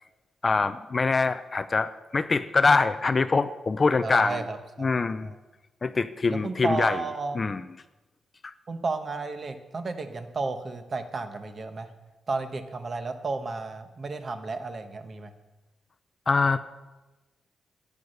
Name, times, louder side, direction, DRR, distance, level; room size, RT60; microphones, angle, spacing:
voice 1, 0.4-4.4 4.8-5.3 5.8-7.0 7.4-7.6 16.3-16.6, left 4 dB, 25° left, 12 dB, 0.4 m, -24 dB
voice 2, 4.0-5.4 6.3-7.4 8.7-11.9 12.3-15.3, right 3 dB, 30° right, 8 dB, 1.1 m, -33 dB
14.0 x 9.7 x 6.5 m, 1.1 s
wide cardioid pair, 170°, 0 cm